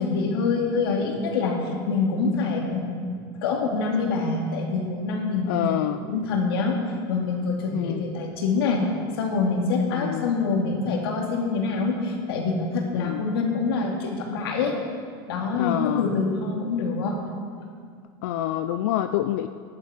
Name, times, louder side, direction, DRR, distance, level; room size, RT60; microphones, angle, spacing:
voice 1, 0.0-1.6 1.9-5.6 6.1-6.8 7.1-8.8 9.2-14.8 15.3-17.2, left 4 dB, 85° left, 0 dB, 2.6 m, -25 dB
voice 2, 5.5-6.0 7.7-8.0 9.9-10.3 12.9-13.2 15.6-16.1 18.2-19.5, left 12 dB, 55° left, 9 dB, 0.4 m, -27 dB
14.0 x 10.5 x 5.1 m, 2.1 s
supercardioid pair, 180°, 12 cm